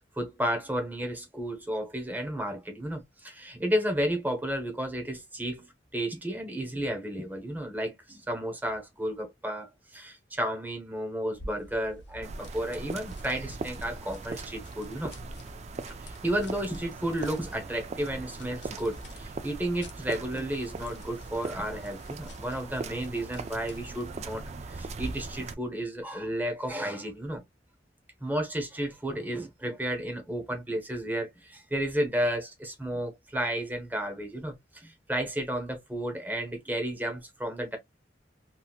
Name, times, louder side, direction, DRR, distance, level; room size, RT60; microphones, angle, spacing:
voice 1, 0.2-15.1 16.0-27.4 28.2-37.8, right 1 dB, 10° right, 0.9 m, -32 dB
sound 1, 11.3-24.2, left 1 dB, 70° left, 0.9 m, -50 dB
sound 2, 12.2-25.5, right 3 dB, 40° right, 0.4 m, -40 dB
2.9 x 2.8 x 2.3 m
head